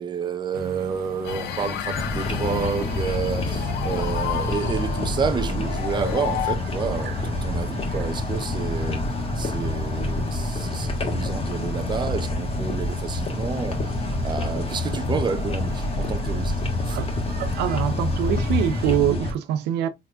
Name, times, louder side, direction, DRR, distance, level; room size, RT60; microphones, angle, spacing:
voice 1, 0.0-9.0 9.4-17.0, right 6 dB, 25° right, 0.6 m, -30 dB
sound 1, 0.5-19.0, right 5 dB, 65° right, 0.9 m, -42 dB
sound 2, 1.2-6.5, left 9 dB, 85° left, 0.8 m, -31 dB
sound 3, 1.9-19.3, left 2 dB, 35° left, 1.4 m, -27 dB
voice 2, 17.4-19.9, right 10 dB, 85° right, 0.6 m, -24 dB
4.0 x 3.5 x 2.3 m
cardioid pair, 110°, 17 cm